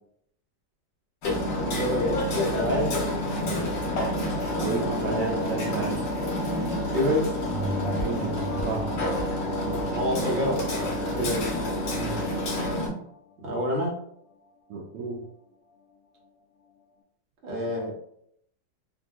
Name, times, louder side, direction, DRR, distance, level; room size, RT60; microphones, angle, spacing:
Hammer, 1.2-12.9, left 1 dB, 90° left, 1.7 m, -28 dB
voice 1, 1.7-3.0 5.0-6.0 6.9-7.3 9.6-11.4 13.4-14.0 17.4-17.9, equal, 45° right, -4 dB, 1.1 m, -28 dB
voice 2, 4.5-6.0 8.0-9.0 11.9-12.4 14.7-15.2, right 3 dB, 80° right, 0 dB, 1.2 m, -33 dB
sound 1, 7.4-12.4 12.9-13.0, equal, 70° left, 0.8 m, -36 dB
3.7 x 2.5 x 2.3 m, 0.69 s
omnidirectional pair, 1.9 m